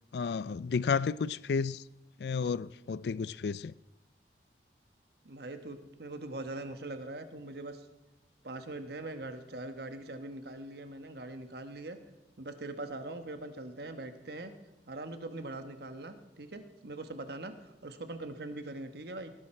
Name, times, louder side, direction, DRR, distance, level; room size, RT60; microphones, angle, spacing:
voice 1, 0.1-1.8 2.2-3.7, left 5 dB, 65° left, 0.4 m, -32 dB
voice 2, 5.2-7.9 8.4-12.0 12.4-14.5 14.9-19.3, right 2 dB, 60° right, 1.1 m, -42 dB
18.0 x 11.5 x 4.4 m
head